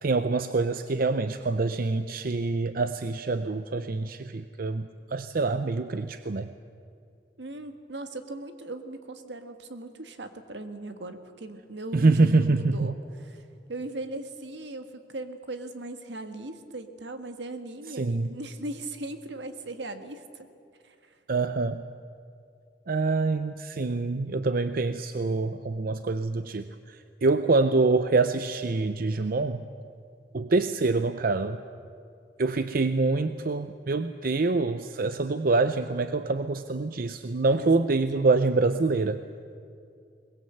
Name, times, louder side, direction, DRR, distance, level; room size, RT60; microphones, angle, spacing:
voice 1, 0.0-6.5 11.9-12.9 17.9-18.3 21.3-21.8 22.9-29.6 30.3-31.6 32.4-39.2, right 3 dB, 55° right, 10 dB, 0.6 m, -25 dB
voice 2, 7.4-20.5 20.8-21.1 37.5-37.7, right 2 dB, 75° right, 8 dB, 1.7 m, -39 dB
22.5 x 20.5 x 8.0 m, 2.4 s
head